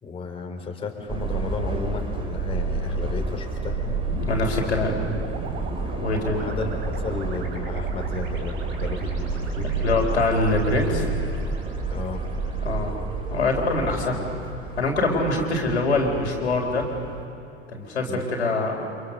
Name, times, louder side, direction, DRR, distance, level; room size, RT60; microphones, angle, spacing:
voice 1, 0.0-4.0 6.3-9.7 11.9-12.2 18.1-18.2, left 4 dB, 15° left, 0 dB, 3.7 m, -33 dB
Subway metro underground, 1.1-17.2, right 3 dB, 15° right, 3.2 m, -30 dB
sound 1, 4.1-12.4, right 3 dB, 35° right, 3.9 m, -39 dB
voice 2, 4.2-4.9 6.0-6.4 9.8-11.1 12.6-13.0 13.3-14.4 14.8-16.9 17.7-18.8, left 2 dB, 75° left, 1 dB, 4.0 m, -24 dB
30.0 x 26.0 x 6.7 m, 2.7 s
figure-of-eight pair, 90°, 34 cm